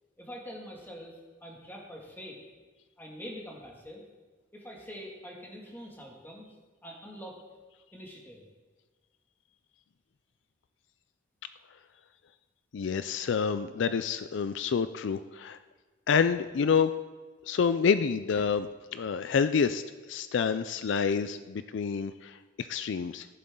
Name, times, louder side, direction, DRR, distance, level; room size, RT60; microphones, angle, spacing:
voice 1, 0.2-1.1 1.4-2.4 3.0-4.0 4.5-6.5 6.8-7.4 7.9-8.4 18.4-18.5, equal, 10° left, -1 dB, 2.1 m, -44 dB
voice 2, 12.7-15.6 16.1-16.9 17.5-19.8 20.1-23.3, left 6 dB, 70° left, 12 dB, 0.4 m, -28 dB
14.5 x 11.0 x 3.8 m, 1.3 s
head